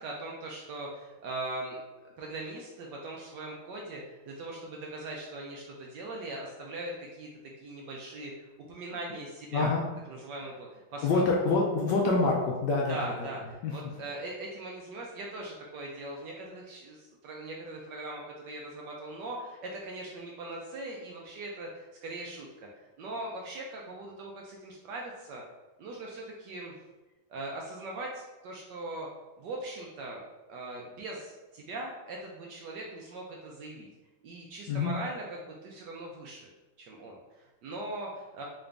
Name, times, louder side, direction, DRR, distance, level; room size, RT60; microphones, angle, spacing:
voice 1, 0.0-7.3 7.6-8.3 8.7-9.7 10.1-11.3 12.9-22.7 23.0-25.4 25.8-26.7 27.3-29.1 29.4-30.2 30.5-33.9 34.2-36.5 36.8-38.4, right 2 dB, 75° right, -1 dB, 1.0 m, -40 dB
voice 2, 9.5-9.9 11.0-13.3 13.6-13.7 34.7-34.9, left 3 dB, 75° left, -2 dB, 1.0 m, -26 dB
3.8 x 2.5 x 3.3 m, 1.1 s
omnidirectional pair, 2.2 m